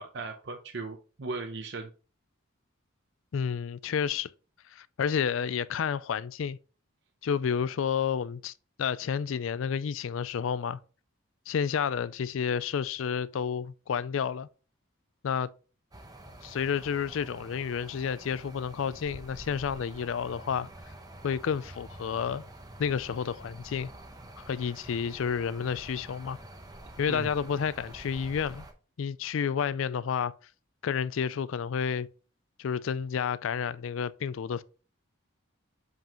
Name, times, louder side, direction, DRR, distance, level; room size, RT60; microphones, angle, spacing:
voice 1, 0.0-1.9 27.1-27.3, right 3 dB, 55° right, 0.7 m, -37 dB
voice 2, 3.3-4.3 4.7-6.6 7.2-10.8 11.5-14.5 15.2-15.5 16.4-20.7 21.2-22.4 22.8-23.9 24.5-26.4 27.0-28.7 29.0-30.3 30.8-32.1 32.6-34.6, left 7 dB, 70° left, 0.4 m, -30 dB
sound 1, 15.9-28.7, right 1 dB, 20° right, 0.8 m, -48 dB
7.5 x 5.5 x 3.0 m
head